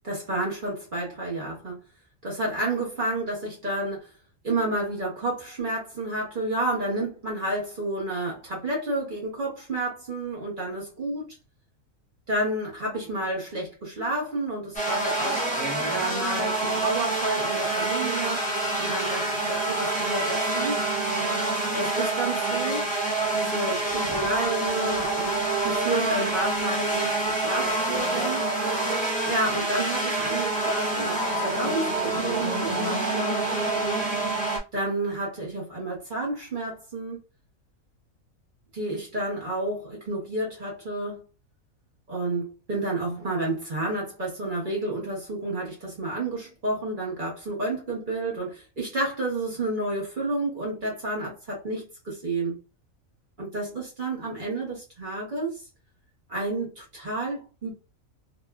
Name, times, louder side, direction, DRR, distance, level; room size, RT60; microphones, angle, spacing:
voice 1, 0.0-1.8 2.2-4.1 4.4-11.3 12.3-15.4 15.9-18.4 18.8-20.8 21.7-22.9 23.3-28.4 29.3-34.1 34.7-37.2 38.7-41.2 42.1-52.6 53.4-55.6 56.3-57.7, right 2 dB, 40° right, 1.0 m, -30 dB
sound 1, 14.7-34.6, right 2 dB, 10° left, 0.4 m, -27 dB
2.9 x 2.2 x 2.3 m
omnidirectional pair, 1.4 m